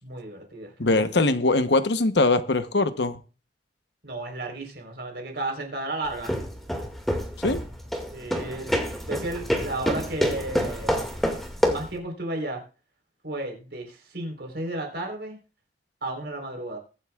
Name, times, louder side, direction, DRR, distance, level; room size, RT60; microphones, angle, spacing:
voice 1, 0.0-1.1 4.0-6.3 8.1-11.2 11.7-12.6 13.2-15.4 16.0-16.8, right 2 dB, 70° right, 3 dB, 4.0 m, -33 dB
voice 2, 0.8-3.2 7.4-7.6, left 2 dB, 80° left, 11 dB, 1.0 m, -22 dB
sound 1, 6.1-12.0, equal, ahead, 2.0 m, -27 dB
22.5 x 7.8 x 2.4 m, 0.35 s
head